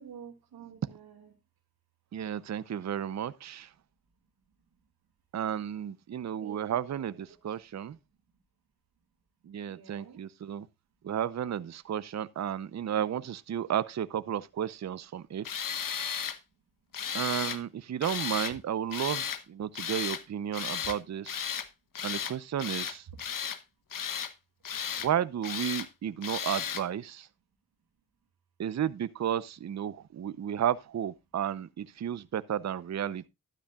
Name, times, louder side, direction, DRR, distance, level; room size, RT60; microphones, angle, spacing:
voice 1, 0.0-1.3 6.4-7.2 9.7-10.2 17.0-17.6, right 8 dB, 75° right, 2.3 m, -50 dB
voice 2, 2.1-3.7 5.3-8.0 9.4-10.7 11.0-15.7 17.1-21.4 22.0-23.1 25.0-27.3 28.6-33.3, right 9 dB, 45° right, 0.6 m, -33 dB
Tools, 15.4-16.4 16.9-17.6 18.0-18.5 18.9-19.4 19.7-20.2 20.5-21.0 21.3-21.7 22.0-22.3 22.6-23.6 23.9-24.3 24.6-25.1 25.4-25.9 26.2-26.8, left 8 dB, 60° left, 1.0 m, -34 dB
12.0 x 10.0 x 2.3 m
supercardioid pair, 45°, 38 cm